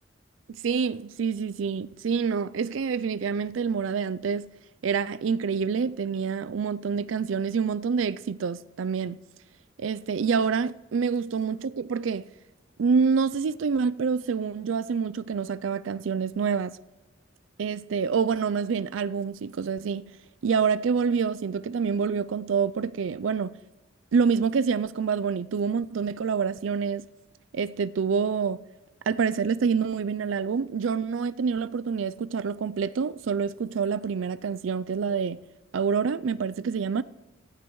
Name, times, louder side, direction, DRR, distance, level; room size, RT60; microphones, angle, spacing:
voice 1, 0.5-4.5 4.8-9.2 9.8-12.2 12.8-16.8 17.6-20.2 20.4-23.5 24.1-27.1 27.5-28.6 29.1-35.4 35.7-37.0, right 6 dB, 85° right, 0.4 m, -27 dB
27.0 x 15.5 x 3.1 m
head